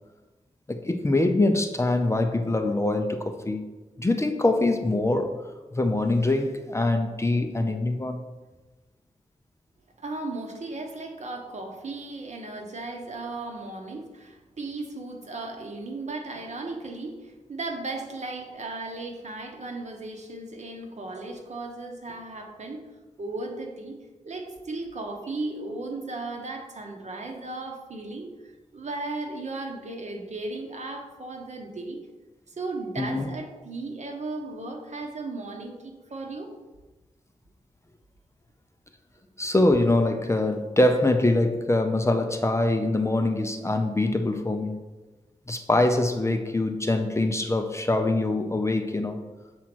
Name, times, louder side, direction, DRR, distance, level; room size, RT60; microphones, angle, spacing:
voice 1, 0.7-3.7 4.0-5.3 5.7-8.2 33.0-33.3 39.4-44.8 45.5-49.2, left 2 dB, 20° left, 6 dB, 0.5 m, -24 dB
voice 2, 10.0-22.9 23.2-24.0 24.2-32.0 32.5-36.5, right 2 dB, 60° right, 2 dB, 1.2 m, -36 dB
7.4 x 4.3 x 6.1 m, 1.2 s
wide cardioid pair, 125°, 14 cm